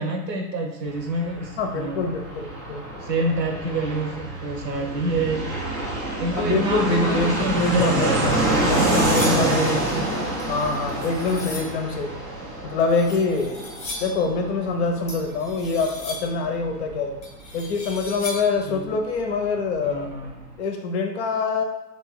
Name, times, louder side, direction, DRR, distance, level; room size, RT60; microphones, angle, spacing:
voice 1, 0.0-2.1 3.0-5.5 6.2-10.2 18.7-19.0 19.8-20.3, right 2 dB, 80° right, 2 dB, 1.1 m, -27 dB
Fixed-wing aircraft airplane, 0.9-19.3 19.5-19.6 19.8-20.5, right 1 dB, 15° right, 0.4 m, -27 dB
voice 2, 1.6-3.0 6.3-8.4 8.7-9.9 10.5-12.1 12.6-13.7 14.0-17.2 17.5-20.1 20.6-21.6, left 4 dB, 40° left, 4 dB, 0.7 m, -25 dB
sound 1, 8.2-9.6 10.4-11.8 12.8-14.3 15.1-16.4 17.2-18.6, left 2 dB, 15° left, 0.9 m, -38 dB
3.4 x 2.9 x 4.6 m, 1.0 s
figure-of-eight pair, 110°, 49 cm